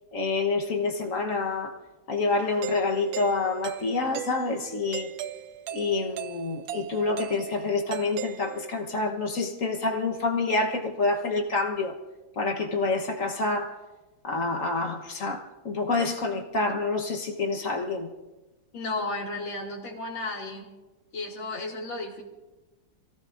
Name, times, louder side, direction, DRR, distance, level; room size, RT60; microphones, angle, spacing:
voice 1, 0.1-1.8 2.1-5.1 5.7-12.0 12.4-13.8 14.2-18.1, left 3 dB, 45° left, 2 dB, 1.4 m, -27 dB
Doorbell, 2.6-8.9, right 10 dB, 85° right, 1.5 m, -39 dB
voice 2, 18.7-20.7 21.1-22.2, left 2 dB, 80° left, -3 dB, 3.4 m, -33 dB
27.0 x 17.0 x 2.6 m, 1.1 s
omnidirectional pair, 2.1 m